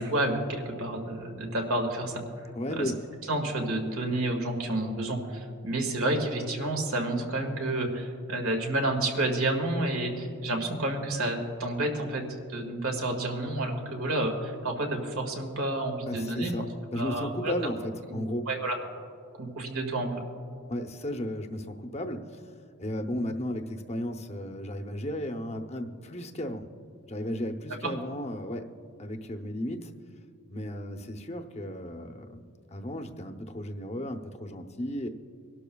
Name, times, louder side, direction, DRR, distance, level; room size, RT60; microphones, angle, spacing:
voice 1, 0.0-2.2 2.7-2.9 3.3-12.2 12.5-16.5 17.0-17.7 18.1-18.2 18.5-18.8 19.4-20.2 27.8-27.9, right 1 dB, 70° right, 3 dB, 1.9 m, -30 dB
voice 2, 2.6-3.1 16.1-18.5 20.7-22.4 22.8-26.7 27.1-28.6 29.0-29.9 30.5-32.4 32.7-35.1, equal, 30° left, 6 dB, 0.8 m, -34 dB
25.5 x 12.0 x 2.3 m, 2.5 s
head